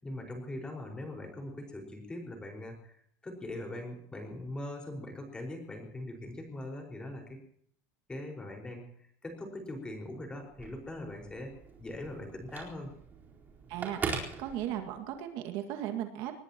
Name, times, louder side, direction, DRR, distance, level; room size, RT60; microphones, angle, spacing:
voice 1, 0.0-7.4 8.1-8.8 9.2-11.5 11.8-12.9, left 1 dB, 10° left, 2 dB, 5.0 m, -41 dB
Telephone, 10.4-15.2, right 5 dB, 25° right, 4.3 m, -41 dB
voice 2, 13.7-16.4, right 11 dB, 55° right, 6 dB, 2.0 m, -37 dB
23.5 x 20.5 x 3.0 m, 0.66 s
supercardioid pair, 155°, 8 cm